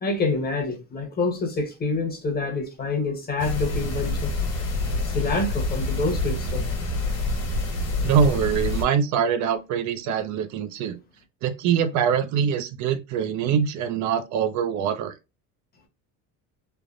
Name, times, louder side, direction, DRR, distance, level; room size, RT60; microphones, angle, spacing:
voice 1, 0.0-4.3 5.0-6.7, left 3 dB, 25° left, 0.9 m, -27 dB
sound 1, 3.4-8.8, left 2 dB, 50° left, 1.3 m, -27 dB
voice 2, 8.0-11.0 11.4-15.1, right 7 dB, 55° right, 0.5 m, -24 dB
3.2 x 2.1 x 2.4 m
cardioid pair, 135°, 34 cm